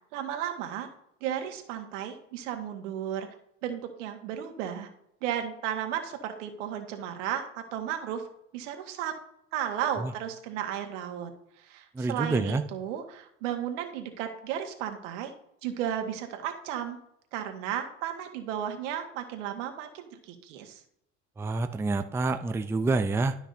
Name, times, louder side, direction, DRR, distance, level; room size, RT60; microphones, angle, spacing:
voice 1, 0.1-0.9 1.2-3.3 3.6-4.9 5.2-8.2 8.5-9.1 9.5-11.3 11.6-15.3 15.6-17.0 17.3-20.8, right 10 dB, 80° right, 5 dB, 1.6 m, -34 dB
voice 2, 11.9-12.6 21.4-23.4, right 3 dB, 5° right, 8 dB, 0.4 m, -27 dB
12.5 x 5.9 x 2.7 m, 0.78 s
supercardioid pair, 100°, 36 cm